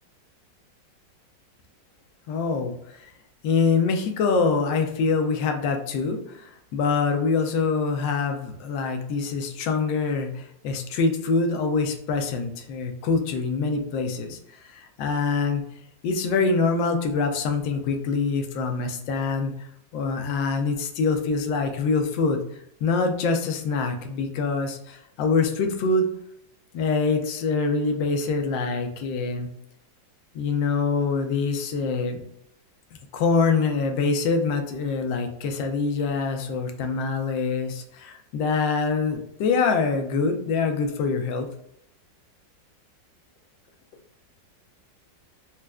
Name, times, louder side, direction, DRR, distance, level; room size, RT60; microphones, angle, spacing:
voice 1, 2.3-3.1 3.4-15.6 16.0-19.7 19.9-22.4 22.8-26.1 26.7-29.5 30.3-32.2 33.1-41.5, left 4 dB, 85° left, 5 dB, 1.3 m, -25 dB
4.2 x 2.4 x 2.2 m, 0.73 s
omnidirectional pair, 2.0 m